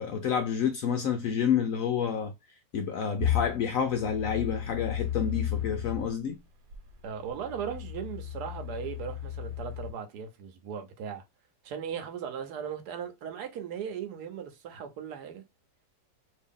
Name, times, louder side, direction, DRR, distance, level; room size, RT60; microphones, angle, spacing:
voice 1, 0.0-2.3 2.7-6.4, left 7 dB, 80° left, 0.7 m, -29 dB
sound 1, 3.2-6.1 6.7-9.9, left 10 dB, 90° right, 1.4 m, -34 dB
voice 2, 7.0-11.2 11.6-15.4, right 8 dB, 65° right, 1.2 m, -38 dB
2.9 x 2.7 x 3.5 m
omnidirectional pair, 1.9 m